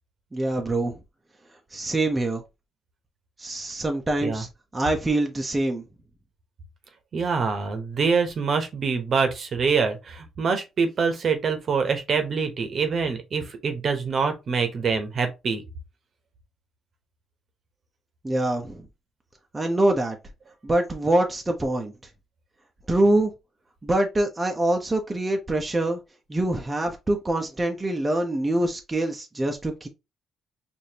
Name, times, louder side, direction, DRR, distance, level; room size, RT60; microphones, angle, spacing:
voice 1, 0.3-1.0 1.7-2.4 3.4-5.8 18.2-18.9 19.5-20.2 20.6-21.9 22.9-23.3 23.8-26.0 26.3-29.9, right 1 dB, 20° right, 0.7 m, -24 dB
voice 2, 7.1-15.6, right 5 dB, 50° right, 1.0 m, -25 dB
4.9 x 2.6 x 2.8 m
cardioid pair, 90°, 0 cm